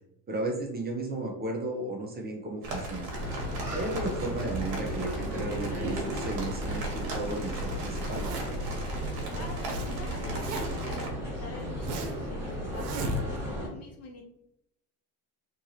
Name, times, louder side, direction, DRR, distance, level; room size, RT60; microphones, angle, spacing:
voice 1, 0.3-3.1 3.7-8.3, right 2 dB, 20° right, 0 dB, 0.6 m, -34 dB
sound 1, 2.6-11.1, right 1 dB, 55° right, 1.1 m, -37 dB
sound 2, 3.1-13.7, equal, 5° right, 1.2 m, -35 dB
Zipper (clothing), 8.0-8.7 9.3-9.9 10.1-10.9 11.4-12.3 12.7-13.5, right 2 dB, 85° right, 0.7 m, -36 dB
voice 2, 9.3-14.2, left 3 dB, 35° left, 3 dB, 0.5 m, -46 dB
2.9 x 2.7 x 2.6 m, 0.81 s
supercardioid pair, 110°, 44 cm